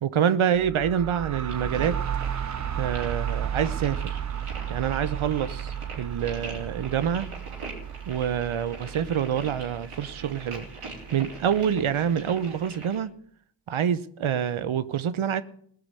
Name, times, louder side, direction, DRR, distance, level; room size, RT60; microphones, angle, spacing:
voice 1, 0.0-2.0 2.8-4.2 4.7-7.3 8.1-10.6 11.1-13.1 13.7-15.4, right 8 dB, 75° right, 0.9 m, -26 dB
sound 1, 0.5-12.2, right 9 dB, 35° right, 0.6 m, -34 dB
sound 2, 1.5-13.0, right 3 dB, 90° right, 4.3 m, -43 dB
17.5 x 6.0 x 8.2 m
cardioid pair, 40°, 50 cm